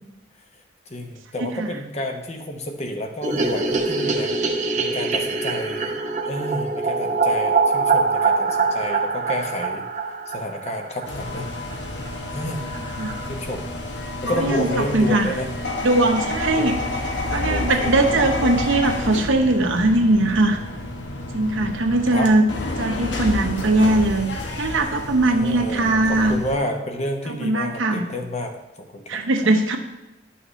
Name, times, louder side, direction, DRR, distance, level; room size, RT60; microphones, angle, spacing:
voice 1, 0.9-4.3 4.7-6.0 6.3-9.8 10.3-11.5 12.3-12.6 13.3-13.6 14.2-15.5 16.5-16.7 17.4-18.3 22.1-22.3 25.2-29.5, equal, 35° left, 4 dB, 0.8 m, -30 dB
sound 1, 3.2-11.4 11.7-11.8 12.1-12.2 12.4-12.5 12.7-13.3, right 4 dB, 40° right, 0.7 m, -23 dB
sound 2, 11.1-26.6, left 2 dB, 70° left, 1.0 m, -29 dB
voice 2, 14.4-14.7 14.9-15.3 15.8-16.8 17.3-20.6 21.3-22.4 22.8-24.3 24.6-26.4 27.4-28.1 29.1-29.8, right 2 dB, 90° right, 4 dB, 0.9 m, -20 dB
11.0 x 5.8 x 3.1 m, 0.99 s
head